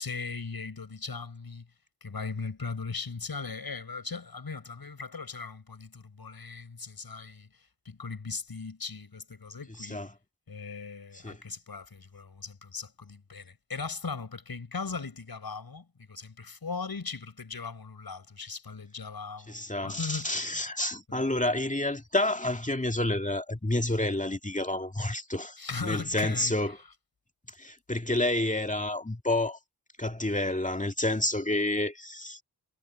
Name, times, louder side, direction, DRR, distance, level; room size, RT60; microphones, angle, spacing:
voice 1, 0.0-1.7 2.0-7.5 7.9-10.0 10.5-20.7 21.1-21.3 25.6-26.8, left 4 dB, 55° left, 7.0 m, -38 dB
voice 2, 19.5-26.8 27.6-29.6 30.0-32.4, left 1 dB, 15° left, 2.1 m, -29 dB
cardioid pair, 50°, 43 cm